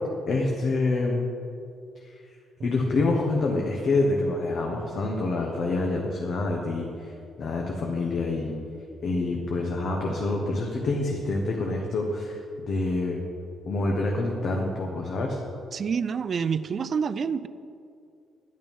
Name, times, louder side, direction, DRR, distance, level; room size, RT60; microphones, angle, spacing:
voice 1, 0.3-1.2 2.6-7.1 7.4-8.6 9.0-12.4 12.7-13.2 13.7-15.4, left 2 dB, 45° left, 0 dB, 1.2 m, -26 dB
voice 2, 15.7-17.5, right 6 dB, 35° right, 15 dB, 0.4 m, -27 dB
10.5 x 10.0 x 5.5 m, 2.5 s
cardioid pair, 165°, 0 cm